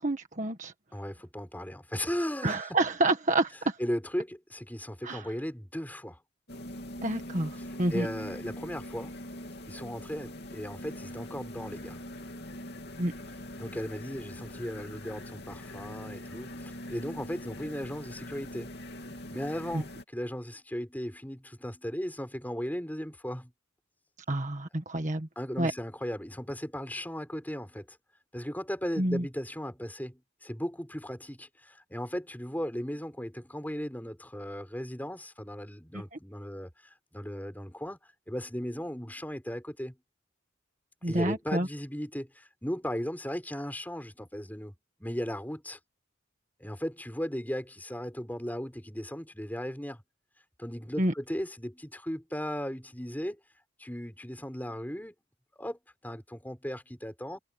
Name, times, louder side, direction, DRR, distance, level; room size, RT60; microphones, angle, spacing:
voice 1, 0.0-0.7 2.4-3.8 5.0-5.2 7.0-8.1 13.0-13.1 19.7-19.8 24.3-25.3 25.6-25.7 29.0-29.2 36.1-36.2 41.0-41.7 51.0-51.1, right 2 dB, 40° right, 1.7 m, -28 dB
voice 2, 0.9-2.8 3.8-6.2 7.6-9.1 9.7-12.0 13.6-18.7 19.3-23.5 25.4-28.0 28.3-38.0 38.3-40.0 41.1-45.8 46.6-50.0 50.6-53.4 53.8-55.1 55.6-57.4, equal, 10° left, 5.8 m, -37 dB
sound 1, 6.5-20.0, left 1 dB, 55° left, 3.0 m, -42 dB
head